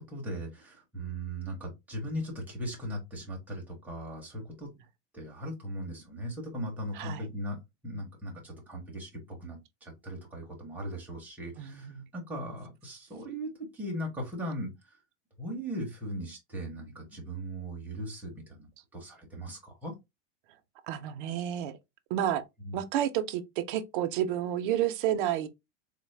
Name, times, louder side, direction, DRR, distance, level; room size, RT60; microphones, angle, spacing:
voice 1, 0.1-4.7 5.1-7.6 7.8-14.7 15.4-19.9 22.6-22.8, equal, 5° right, 0.7 m, -38 dB
voice 2, 7.0-7.3 11.6-12.0 20.9-21.8 22.1-22.4 22.7-25.5, right 11 dB, 45° right, 0.5 m, -30 dB
4.0 x 2.0 x 3.2 m
supercardioid pair, 170°, 36 cm